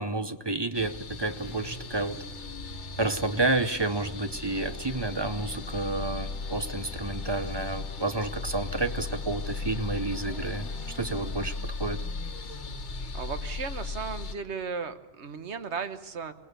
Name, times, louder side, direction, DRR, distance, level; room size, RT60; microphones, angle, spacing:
voice 1, 0.0-2.2 3.0-10.7 10.9-12.0, right 2 dB, 25° right, 11 dB, 0.8 m, -30 dB
sound 1, 0.7-14.3, left 4 dB, 85° left, 1.6 m, -37 dB
sound 2, 1.3-13.1, equal, 35° left, 6.3 m, -48 dB
Brass instrument, 4.5-11.5, left 5 dB, 50° right, 5.7 m, -51 dB
voice 2, 13.1-16.3, right 5 dB, 75° right, 10 dB, 1.5 m, -35 dB
25.0 x 19.0 x 6.8 m, 1.0 s
omnidirectional pair, 1.2 m